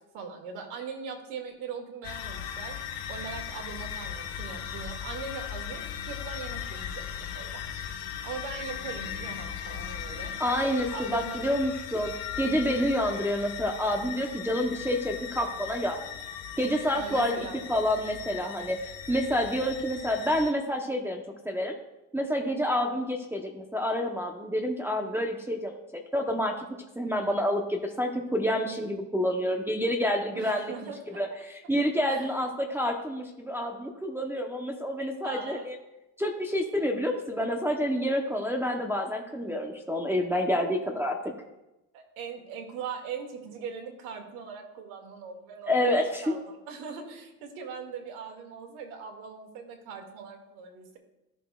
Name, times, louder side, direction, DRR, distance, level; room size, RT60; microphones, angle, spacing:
voice 1, 0.1-2.8 3.1-7.7 8.1-10.3 10.9-11.4 16.9-17.6 30.4-31.2 32.1-32.3 35.2-35.7 41.9-45.7 46.2-51.0, right 6 dB, 85° right, 3 dB, 2.1 m, -40 dB
sound 1, 2.0-20.5, left 9 dB, 70° left, 1.2 m, -38 dB
voice 2, 10.4-16.0 16.6-21.8 22.1-25.8 26.1-26.6 27.0-30.7 31.2-35.8 36.2-41.2 45.7-46.3, equal, 5° right, 1 dB, 0.8 m, -28 dB
14.5 x 6.3 x 2.3 m, 0.94 s
cardioid pair, 115°, 45 cm